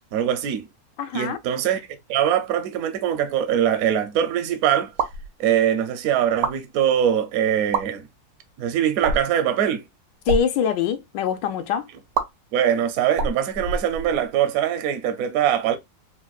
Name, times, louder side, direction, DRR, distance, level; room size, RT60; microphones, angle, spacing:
voice 1, 0.1-0.7 1.1-1.8 2.1-4.9 5.4-8.0 8.6-9.8 12.5-15.8, right 9 dB, 70° right, 0.9 m, -22 dB
voice 2, 1.0-1.4 10.3-11.9, left 7 dB, 80° left, 1.2 m, -24 dB
sound 1, 4.9-5.3 6.3-6.6 7.6-7.8 9.0-9.4 10.1-10.5 12.1-12.3 13.1-14.3, right 4 dB, 90° right, 1.3 m, -26 dB
4.1 x 2.1 x 2.3 m
omnidirectional pair, 1.9 m